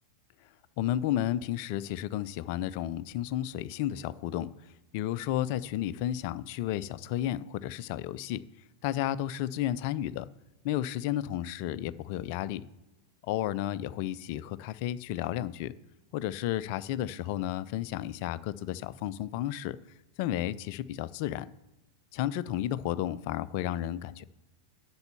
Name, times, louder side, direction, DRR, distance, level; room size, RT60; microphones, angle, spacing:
voice 1, 0.8-4.5 4.9-8.4 8.8-10.3 10.6-12.6 13.2-15.7 16.1-19.8 20.2-21.5 22.1-24.2, left 12 dB, 45° left, 17 dB, 0.4 m, -32 dB
7.9 x 6.2 x 7.0 m, 0.99 s
figure-of-eight pair, 90°, 0 cm